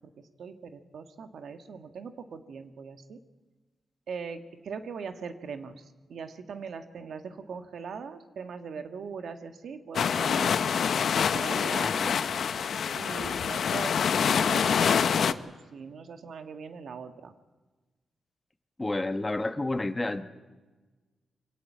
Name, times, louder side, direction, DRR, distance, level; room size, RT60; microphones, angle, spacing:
voice 1, 0.2-3.2 4.1-5.8 6.1-10.6 11.0-11.9 12.9-17.3, right 5 dB, 75° right, 7 dB, 1.5 m, -41 dB
sound 1, 9.9-15.3, left 7 dB, 70° left, 0.8 m, -26 dB
voice 2, 11.8-12.2 18.8-20.2, left 2 dB, 20° left, 10 dB, 1.1 m, -30 dB
24.5 x 16.0 x 9.2 m, 1.3 s
wide cardioid pair, 110°, 0 cm